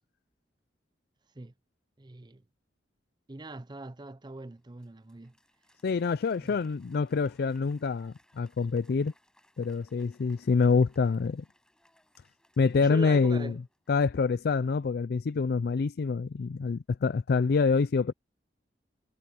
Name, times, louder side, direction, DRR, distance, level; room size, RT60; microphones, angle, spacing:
voice 1, 2.0-2.4 3.3-5.4 6.4-6.6 12.7-13.6, right 2 dB, 25° right, 0.6 m, -42 dB
Applause, 4.6-14.1, left 1 dB, 5° left, 6.3 m, -67 dB
voice 2, 5.8-9.1 9.6-11.4 12.6-13.5 13.9-18.1, left 4 dB, 55° left, 0.4 m, -26 dB
head